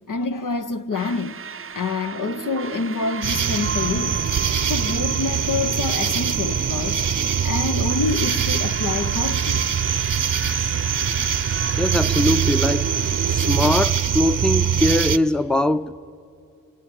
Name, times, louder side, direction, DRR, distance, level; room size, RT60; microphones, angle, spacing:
voice 1, 0.1-1.4 1.7-4.2 4.6-7.0 7.4-9.7 11.5-11.6, left 4 dB, 70° left, 0.9 m, -27 dB
sound 1, 0.9-13.7, right 6 dB, 40° right, 0.6 m, -34 dB
sound 2, 3.2-15.2, right 8 dB, 70° right, 0.8 m, -23 dB
voice 2, 11.8-12.9 13.3-15.9, left 1 dB, ahead, 0.6 m, -21 dB
24.0 x 23.5 x 8.2 m
cardioid pair, 45°, 33 cm